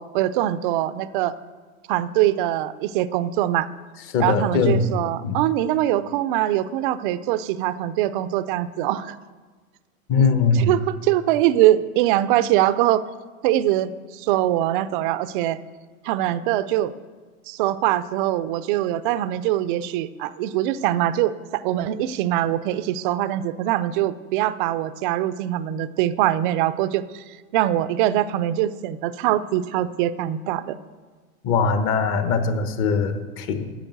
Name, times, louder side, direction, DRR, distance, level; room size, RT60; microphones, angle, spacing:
voice 1, 0.0-1.3 1.9-3.7 4.2-9.2 10.2-10.3 10.5-13.1 13.4-15.6 16.0-16.9 17.5-27.2 27.5-30.8, right 13 dB, 40° right, 14 dB, 0.5 m, -23 dB
voice 2, 4.1-5.0 5.2-5.4 10.1-10.7 31.4-33.7, left 4 dB, 30° left, 9 dB, 1.0 m, -21 dB
10.0 x 7.0 x 8.0 m, 1.4 s
hypercardioid pair, 140°, 43 cm